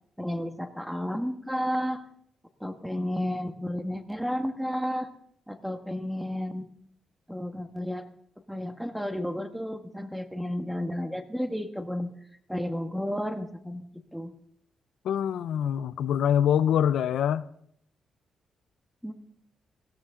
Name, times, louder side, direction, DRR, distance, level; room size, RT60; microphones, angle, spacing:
voice 1, 0.2-2.0 2.6-5.1 5.5-6.7 7.3-8.1 8.5-12.1 12.5-13.9 14.1-14.3 19.0-19.1, equal, ahead, 1.6 m, -32 dB
voice 2, 15.0-17.4, left 9 dB, 80° left, 0.5 m, -24 dB
19.5 x 16.5 x 3.8 m
cardioid pair, 115°, 0 cm